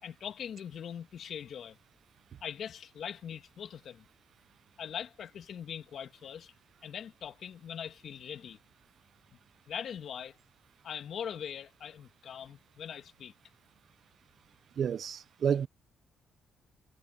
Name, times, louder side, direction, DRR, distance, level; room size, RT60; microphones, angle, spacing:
voice 1, 0.0-1.8 2.4-4.1 4.8-6.5 6.8-8.6 9.7-10.4 10.8-13.3, left 8 dB, 60° left, 2.3 m, -41 dB
voice 2, 14.8-15.7, right 7 dB, 60° right, 0.5 m, -30 dB
cardioid pair, 90°, 0 cm